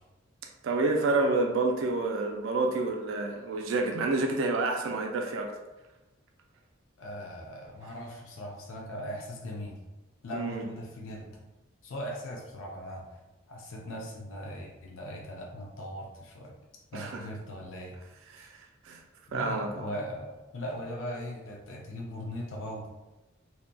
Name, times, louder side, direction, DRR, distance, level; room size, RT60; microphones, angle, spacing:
voice 1, 0.6-5.5 10.3-10.6 16.9-17.2 18.3-18.5 18.8-19.0 19.3-19.9, right 3 dB, 75° right, 2 dB, 0.3 m, -28 dB
voice 2, 7.0-9.8 10.2-11.4 11.8-13.1 13.5-16.5 16.9-17.9 18.4-18.5 19.3-23.0, equal, 80° left, -1 dB, 0.5 m, -39 dB
2.7 x 2.1 x 2.6 m, 1.1 s
head